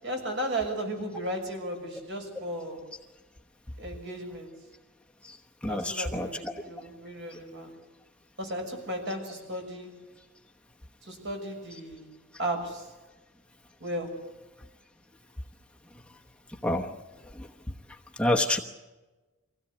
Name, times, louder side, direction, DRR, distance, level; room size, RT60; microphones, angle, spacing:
voice 1, 0.0-2.9 3.8-4.5 5.7-7.7 8.4-10.0 11.0-12.1 12.4-12.9 13.8-14.3, right 1 dB, 55° right, 3 dB, 6.6 m, -35 dB
voice 2, 5.6-6.3 16.6-16.9 18.2-18.6, left 1 dB, 5° left, 1 dB, 1.0 m, -26 dB
25.0 x 17.0 x 8.3 m, 1.2 s
head